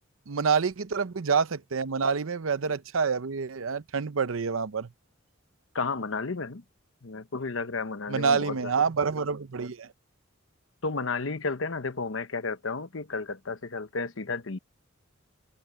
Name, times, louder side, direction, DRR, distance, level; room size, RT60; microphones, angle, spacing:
voice 1, 0.3-4.9 8.1-9.9, right 5 dB, 85° right, 0.7 m, -27 dB
voice 2, 5.7-6.6 7.0-8.6 10.8-14.6, left 4 dB, 70° left, 1.0 m, -32 dB
head